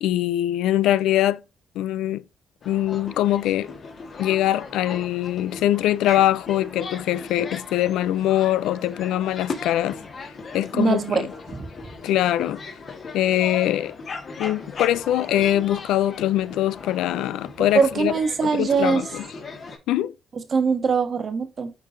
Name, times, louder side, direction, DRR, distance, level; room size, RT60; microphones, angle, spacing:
voice 1, 0.0-1.4 1.8-2.2 2.7-3.7 4.2-10.0 10.5-11.3 12.0-12.6 13.1-13.9 14.4-18.1 18.5-19.1 19.9-20.1, left 13 dB, 90° left, 0.4 m, -22 dB
sound 1, 2.6-19.8, left 4 dB, 50° left, 1.7 m, -38 dB
voice 2, 10.7-11.6 17.7-19.0 20.5-21.7, right 5 dB, 45° right, 1.2 m, -22 dB
10.0 x 3.8 x 2.6 m
cardioid pair, 90°, 0 cm